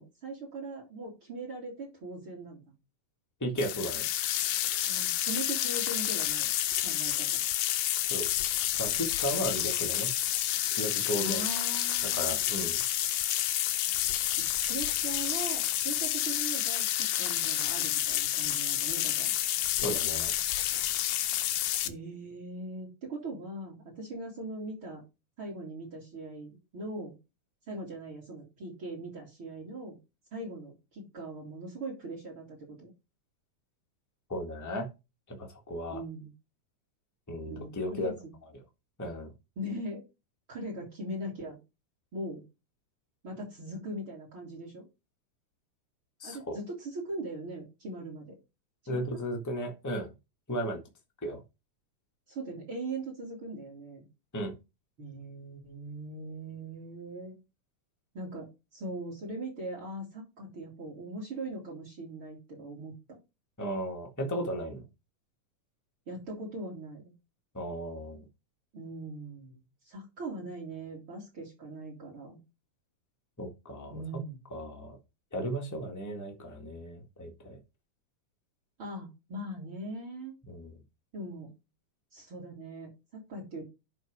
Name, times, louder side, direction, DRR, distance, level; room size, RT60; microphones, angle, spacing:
voice 1, 0.0-2.6 4.9-6.5 6.8-7.4 11.2-12.4 14.3-19.3 21.8-25.0 25.4-27.2 27.7-30.0 30.3-32.9 35.9-36.3 37.4-38.2 39.6-40.0 40.5-41.6 42.1-42.4 43.2-44.8 46.2-48.3 48.8-49.0 52.3-54.1 55.0-57.3 58.1-63.2 66.1-67.1 68.7-72.4 73.9-74.4 78.8-80.3 81.1-81.5 82.1-83.6, right 1 dB, 40° right, 0 dB, 3.2 m, -40 dB
voice 2, 3.4-4.1 8.1-8.3 8.8-10.1 10.8-11.4 12.1-12.8 19.8-20.3 34.3-34.9 35.3-36.0 37.3-38.1 39.0-39.3 46.2-46.6 48.9-50.1 50.5-50.8 51.2-51.4 54.3-54.5 63.6-64.8 67.5-68.2 73.4-74.0 74.5-75.0 75.3-77.6 80.5-80.7, equal, 25° left, 2 dB, 0.4 m, -35 dB
sound 1, 3.6-21.9, left 12 dB, 75° left, 1.5 m, -29 dB
10.5 x 4.0 x 4.9 m, 0.26 s
omnidirectional pair, 3.6 m